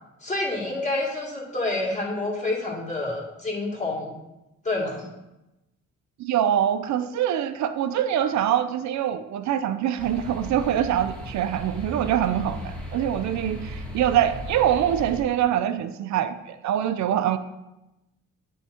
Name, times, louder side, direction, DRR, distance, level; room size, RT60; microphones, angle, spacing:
voice 1, 0.2-4.2 4.6-5.1, left 2 dB, 25° left, -2 dB, 2.2 m, -28 dB
voice 2, 6.2-17.4, right 10 dB, 65° right, 9 dB, 0.6 m, -24 dB
sound 1, 10.0-15.2, equal, 5° left, 1.5 m, -37 dB
9.8 x 3.6 x 4.3 m, 0.96 s
cardioid pair, 90°, 30 cm